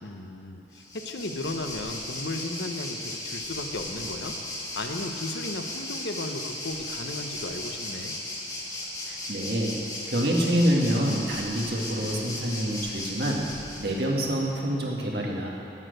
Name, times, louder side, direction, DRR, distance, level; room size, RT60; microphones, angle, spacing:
voice 1, 0.0-4.4 4.8-8.2, left 2 dB, 75° left, 5 dB, 0.9 m, -35 dB
Waves surf, 0.7-14.0, left 1 dB, 20° left, 1.6 m, -36 dB
voice 2, 9.1-9.7 10.1-13.4 13.8-15.5, equal, 60° right, -2 dB, 1.8 m, -26 dB
11.0 x 8.5 x 7.9 m, 2.8 s
head